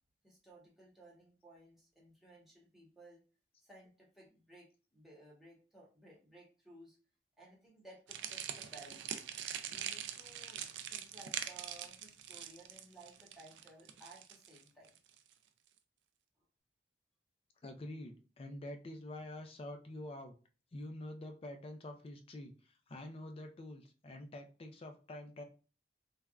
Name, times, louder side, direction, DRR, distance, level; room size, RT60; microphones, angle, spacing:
voice 1, 0.2-3.2 3.6-7.0 7.4-10.6 10.9-14.9, right 2 dB, ahead, -4 dB, 1.0 m, -58 dB
sound 1, 8.1-15.3, right 9 dB, 80° right, 0.3 m, -43 dB
voice 2, 17.6-20.3 20.7-25.4, left 1 dB, 35° left, 5 dB, 0.4 m, -47 dB
3.3 x 2.2 x 2.3 m, 0.35 s
head